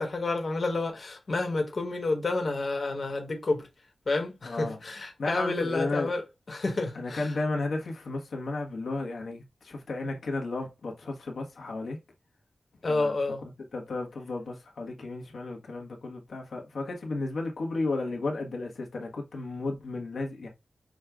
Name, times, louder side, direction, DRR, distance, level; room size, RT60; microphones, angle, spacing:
voice 1, 0.0-3.7 4.1-6.2 6.5-7.4 12.8-13.4, left 3 dB, 55° left, 1.3 m, -29 dB
voice 2, 4.4-4.8 5.2-6.1 6.9-12.0 12.9-13.1 13.7-20.5, left 2 dB, 90° left, 1.2 m, -33 dB
6.3 x 2.4 x 3.5 m
wide cardioid pair, 90°, 0 cm